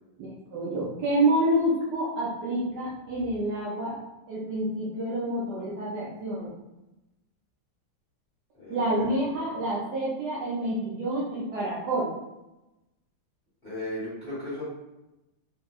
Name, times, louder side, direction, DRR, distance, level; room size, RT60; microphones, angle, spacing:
voice 1, 0.2-3.9 4.3-6.5 8.7-12.1, right 1 dB, 70° right, -7 dB, 1.0 m, -28 dB
voice 2, 8.5-9.1 13.6-14.6, left 1 dB, 40° left, -10 dB, 0.9 m, -35 dB
3.5 x 2.7 x 2.3 m, 0.99 s
omnidirectional pair, 2.4 m